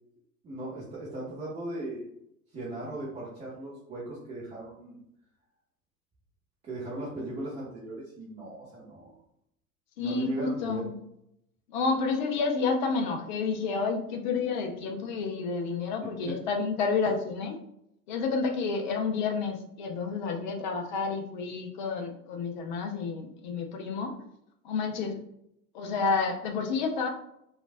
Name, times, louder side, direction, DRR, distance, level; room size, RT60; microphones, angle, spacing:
voice 1, 0.4-2.1 2.5-5.0 6.6-9.1 10.0-10.9, right 1 dB, 15° right, -7 dB, 0.5 m, -37 dB
voice 2, 10.0-11.0 11.7-17.6 18.1-24.1 24.6-25.2 25.7-27.1, left 4 dB, 35° left, 4 dB, 0.4 m, -30 dB
3.1 x 2.3 x 2.4 m, 0.77 s
figure-of-eight pair, 95°, 48 cm